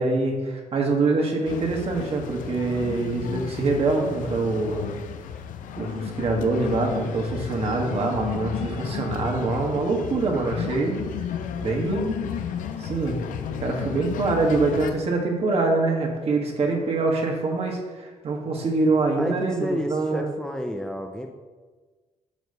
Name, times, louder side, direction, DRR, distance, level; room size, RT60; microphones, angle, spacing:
voice 1, 0.0-4.9 5.8-11.0 11.6-12.2 12.8-13.2 13.6-20.3, right 3 dB, 50° right, 1 dB, 1.5 m, -24 dB
sound 1, 1.4-14.9, left 8 dB, 90° left, 0.6 m, -33 dB
voice 2, 19.2-21.3, equal, 5° left, 3 dB, 0.5 m, -30 dB
9.0 x 3.1 x 6.7 m, 1.3 s
cardioid pair, 125°, 13 cm